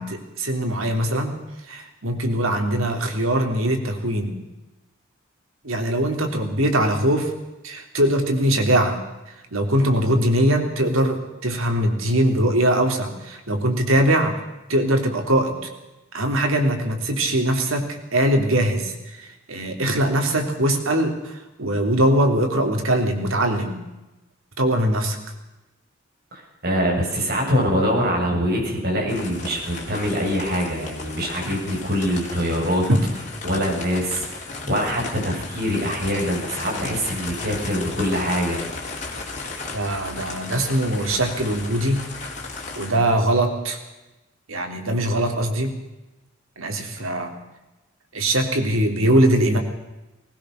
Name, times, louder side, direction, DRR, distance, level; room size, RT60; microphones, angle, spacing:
voice 1, 0.0-1.3 1.7-4.3 5.6-7.3 7.6-9.0 9.5-14.4 14.7-15.7 16.1-23.8 24.6-25.2 31.5-31.8 32.9-33.0 39.7-42.0 42.7-43.8 44.5-45.7 46.6-47.3 48.1-49.6, right 1 dB, 85° right, 4 dB, 3.4 m, -21 dB
voice 2, 26.3-32.9 33.4-38.6, equal, 50° right, -1 dB, 7.3 m, -24 dB
sound 1, 29.1-42.9, left 3 dB, 35° left, 4.3 m, -35 dB
20.5 x 20.0 x 6.6 m, 1.0 s
head